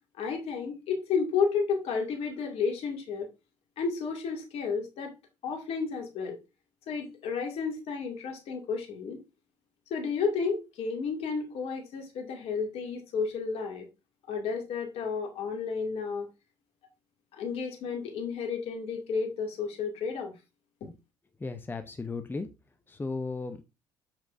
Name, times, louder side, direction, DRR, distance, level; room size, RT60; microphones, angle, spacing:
voice 1, 0.2-3.3 3.8-5.1 5.4-6.4 6.9-9.2 9.9-13.9 14.3-16.3 17.3-20.3 20.8-20.9, left 5 dB, 55° left, 2.4 m, -32 dB
voice 2, 21.4-22.5 22.9-23.6, left 3 dB, 15° left, 0.7 m, -35 dB
7.3 x 5.9 x 2.6 m
hypercardioid pair, 55°, 12 cm